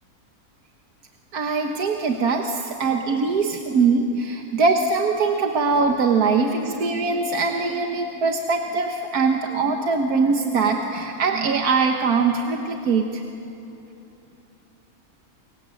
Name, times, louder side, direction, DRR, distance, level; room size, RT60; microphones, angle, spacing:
voice 1, 1.3-13.2, right 4 dB, 90° right, 3 dB, 1.8 m, -22 dB
29.0 x 24.0 x 7.8 m, 2.8 s
omnidirectional pair, 1.6 m